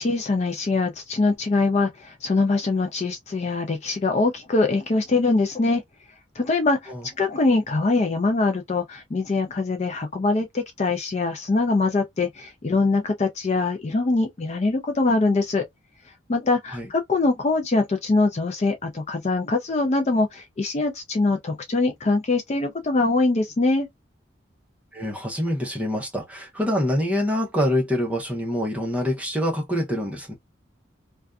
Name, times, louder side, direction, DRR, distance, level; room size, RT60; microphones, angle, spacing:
voice 1, 0.0-5.8 6.4-6.9 7.2-15.6 16.3-23.9, left 3 dB, 35° left, 0.4 m, -23 dB
voice 2, 24.9-30.3, equal, 5° right, 0.7 m, -25 dB
2.5 x 2.3 x 2.3 m
head